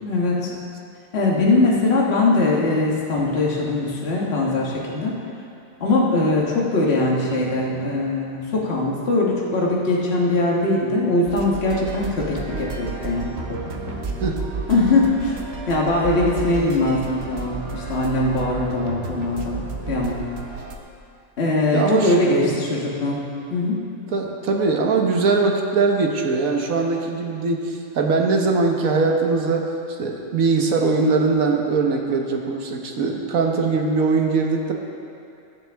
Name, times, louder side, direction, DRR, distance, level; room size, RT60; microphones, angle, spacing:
voice 1, 0.0-0.5 1.1-5.2 5.8-13.6 14.7-15.4 15.7-20.2 21.4-23.8, left 2 dB, 50° left, -4 dB, 1.6 m, -21 dB
sound 1, 11.3-20.8, right 4 dB, 50° right, 1.2 m, -32 dB
voice 2, 21.7-22.6 24.1-29.7 30.0-34.7, right 4 dB, 85° right, 1 dB, 1.5 m, -21 dB
21.0 x 7.7 x 3.5 m, 2.5 s
omnidirectional pair, 1.4 m